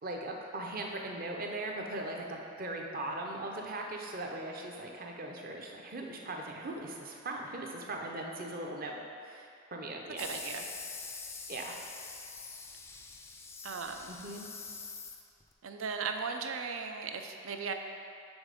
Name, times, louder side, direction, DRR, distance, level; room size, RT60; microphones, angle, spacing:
voice 1, 0.0-9.0 9.2-10.3 11.5-11.8 14.1-14.4, right 2 dB, 45° right, 0 dB, 0.7 m, -39 dB
sound 1, 10.2-15.5, left 4 dB, 15° left, 0.3 m, -45 dB
voice 2, 10.2-10.7 13.6-14.1 15.6-17.7, right 5 dB, 85° right, 5 dB, 0.5 m, -37 dB
7.1 x 4.0 x 5.1 m, 2.5 s
head